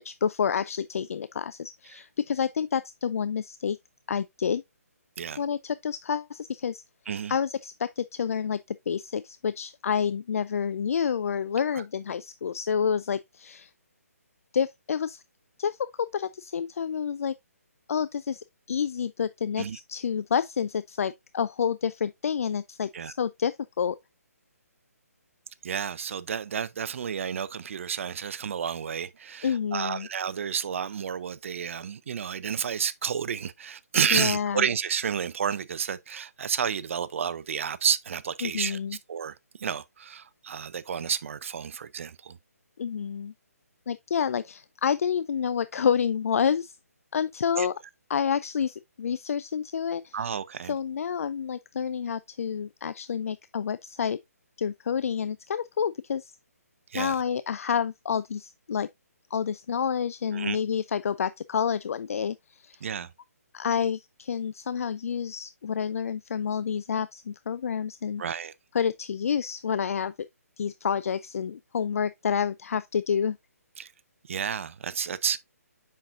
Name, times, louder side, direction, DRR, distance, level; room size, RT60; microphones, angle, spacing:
voice 1, 0.0-3.8 4.1-4.6 5.4-6.8 7.3-13.7 14.5-15.2 15.6-17.3 17.9-24.0 29.4-30.1 34.1-34.7 38.4-39.0 42.8-43.3 43.9-46.8 47.1-47.7 48.1-50.2 50.7-54.2 54.6-56.3 56.9-58.9 59.3-62.8 63.5-68.2 68.7-70.1 70.6-73.4, left 7 dB, 60° left, 0.4 m, -29 dB
voice 2, 25.6-38.8 39.1-42.4 47.6-47.7 50.1-50.8 56.9-57.2 60.3-60.6 62.8-63.1 68.2-68.5 73.8-73.9 74.3-75.4, right 7 dB, 55° right, 0.6 m, -31 dB
7.4 x 5.8 x 2.5 m
hypercardioid pair, 150°, 9 cm